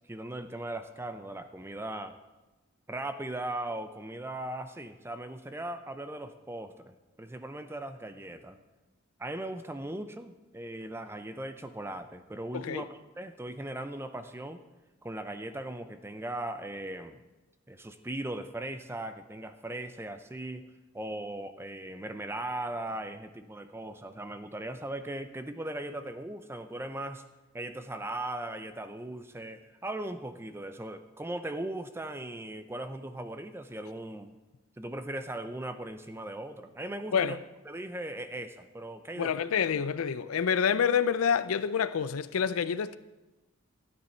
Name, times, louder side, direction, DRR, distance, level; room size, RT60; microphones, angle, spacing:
voice 1, 0.1-2.2 2.9-8.6 9.2-14.6 15.0-17.2 17.7-20.7 20.9-27.2 27.5-34.4 34.8-37.4 37.7-39.3, right 1 dB, 10° right, 0.5 m, -38 dB
voice 2, 12.5-12.8 37.1-37.4 39.2-43.0, left 7 dB, 90° left, 0.5 m, -27 dB
12.5 x 9.7 x 4.4 m
head